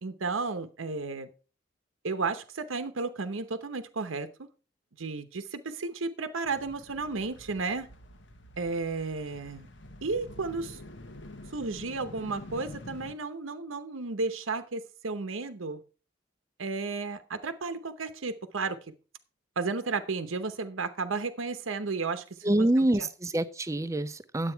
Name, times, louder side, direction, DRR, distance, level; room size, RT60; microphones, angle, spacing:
voice 1, 0.0-1.3 2.0-4.5 5.0-7.9 8.6-9.7 10.0-10.8 11.5-15.8 16.6-18.8 19.6-23.1, right 4 dB, 85° right, 0.9 m, -33 dB
sound 1, 6.4-13.2, left 1 dB, 70° left, 1.2 m, -47 dB
voice 2, 22.4-24.5, right 1 dB, 15° right, 0.5 m, -26 dB
9.9 x 8.1 x 4.5 m
head